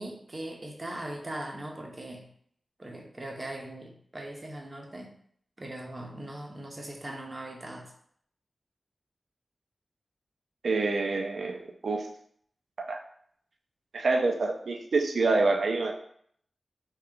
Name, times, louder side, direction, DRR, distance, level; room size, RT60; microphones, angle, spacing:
voice 1, 0.0-2.3 2.8-5.2 5.6-7.9, right 1 dB, 35° right, 1 dB, 0.7 m, -40 dB
voice 2, 10.6-12.1 12.8-13.0 13.9-15.9, right 3 dB, 75° right, 3 dB, 0.5 m, -27 dB
3.6 x 2.3 x 3.3 m, 0.64 s
wide cardioid pair, 65°, 0 cm